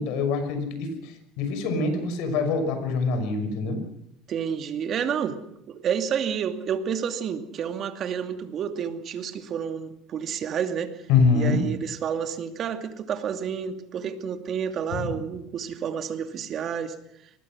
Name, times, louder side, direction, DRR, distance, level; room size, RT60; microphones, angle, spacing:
voice 1, 0.0-3.8 11.1-11.6 14.9-15.1, left 4 dB, 75° left, 7 dB, 6.0 m, -25 dB
voice 2, 4.3-5.4 5.7-11.0 11.3-17.0, right 7 dB, 50° right, 6 dB, 2.6 m, -30 dB
24.5 x 20.5 x 6.3 m, 0.78 s
supercardioid pair, 95°, 0 cm